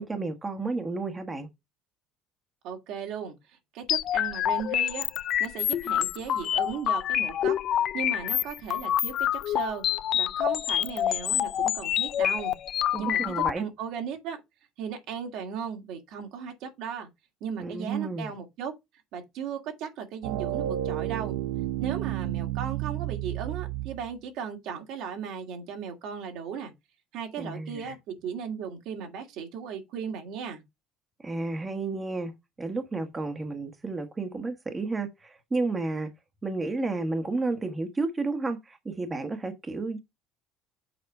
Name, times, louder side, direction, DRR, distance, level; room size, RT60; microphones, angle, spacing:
voice 1, 0.0-1.5 12.9-13.7 17.6-18.3 27.4-27.9 31.2-32.3 32.6-36.1 36.4-40.0, right 3 dB, 20° right, 1.2 m, -31 dB
voice 2, 2.6-3.4 3.7-5.1 5.4-7.6 7.9-9.8 10.1-12.5 13.0-14.4 14.8-17.1 17.4-18.7 19.1-21.4 21.8-26.7 27.1-30.6, right 7 dB, 70° right, 2.1 m, -36 dB
sound 1, 3.9-13.5, left 11 dB, 55° left, 0.5 m, -27 dB
sound 2, 20.2-24.1, right 13 dB, 90° right, 0.6 m, -31 dB
7.0 x 4.2 x 5.3 m
cardioid pair, 115°, 0 cm